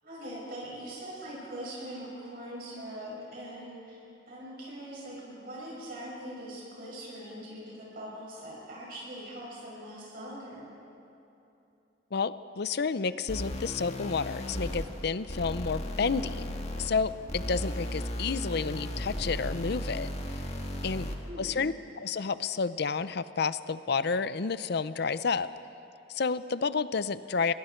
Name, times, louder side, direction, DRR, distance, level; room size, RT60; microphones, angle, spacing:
voice 1, 0.0-4.0 4.3-10.7 20.9-21.6, right 1 dB, 55° right, -5 dB, 6.3 m, -42 dB
voice 2, 12.1-20.1 20.8-21.1 21.4-25.5 26.1-27.5, left 5 dB, 60° left, 14 dB, 0.6 m, -30 dB
sound 1, 13.3-21.3, left 1 dB, 35° left, 1.8 m, -36 dB
28.5 x 22.0 x 4.5 m, 2.9 s
head